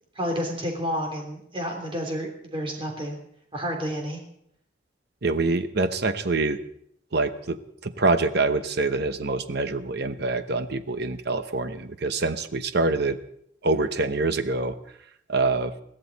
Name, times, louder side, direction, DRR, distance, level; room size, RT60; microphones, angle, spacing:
voice 1, 0.1-3.2 3.5-4.2, equal, 30° right, 2 dB, 3.2 m, -30 dB
voice 2, 5.2-6.6 7.1-7.6 7.8-13.2 13.6-14.7 15.3-15.7, right 3 dB, 55° right, 10 dB, 0.9 m, -25 dB
22.0 x 15.5 x 4.1 m, 0.70 s
head